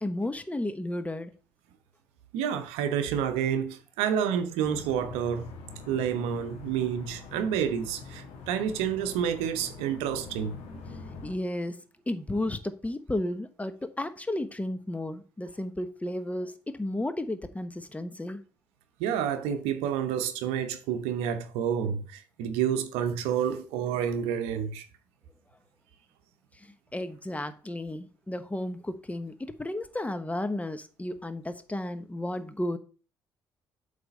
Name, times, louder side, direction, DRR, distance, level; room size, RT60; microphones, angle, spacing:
voice 1, 0.0-1.3 10.9-18.4 26.6-32.8, left 1 dB, 15° left, 0.9 m, -33 dB
voice 2, 2.3-5.5 5.9-10.6 19.0-24.8, right 8 dB, 75° right, 0.7 m, -29 dB
sound 1, 4.6-11.3, left 4 dB, 70° left, 1.2 m, -44 dB
7.8 x 3.4 x 5.2 m
hypercardioid pair, 45°, 11 cm